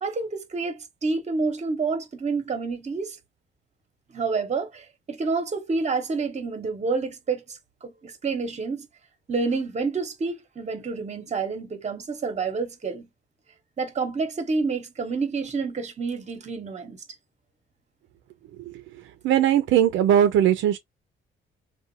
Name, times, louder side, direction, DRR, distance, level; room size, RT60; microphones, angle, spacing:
voice 1, 0.0-3.2 4.1-8.9 9.3-13.1 13.8-17.0, right 4 dB, 35° right, 0.9 m, -28 dB
voice 2, 19.2-20.8, right 10 dB, 80° right, 0.4 m, -19 dB
2.7 x 2.2 x 2.5 m
cardioid pair, 90°, 20 cm